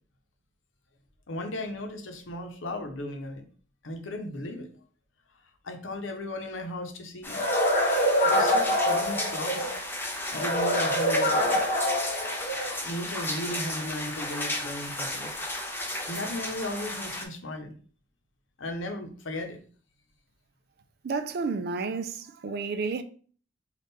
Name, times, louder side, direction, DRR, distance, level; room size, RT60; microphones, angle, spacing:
voice 1, 1.3-3.4 3.8-4.7 5.6-7.4 8.2-9.7 10.3-11.6 12.8-15.3 16.1-17.7 18.6-19.6 22.5-22.6, left 1 dB, 85° left, 0.8 m, -36 dB
sound 1, 7.2-17.2, left 1 dB, 10° left, 0.5 m, -34 dB
sound 2, 7.3-9.7 10.3-12.8, equal, 45° left, 0.9 m, -25 dB
voice 2, 21.0-23.0, right 4 dB, 55° right, 0.4 m, -31 dB
4.1 x 2.4 x 3.6 m
head